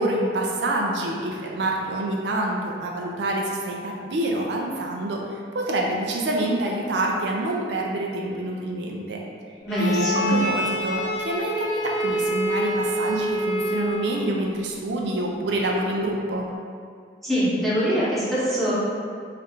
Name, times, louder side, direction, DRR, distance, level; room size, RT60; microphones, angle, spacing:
voice 1, 0.0-9.2 9.8-16.5, right 1 dB, 75° right, -1 dB, 0.5 m, -27 dB
voice 2, 9.6-10.4 17.2-18.7, equal, ahead, -11 dB, 1.0 m, -23 dB
Bowed string instrument, 9.7-14.3, equal, 85° left, 0.4 m, -27 dB
3.3 x 2.4 x 4.3 m, 2.2 s
head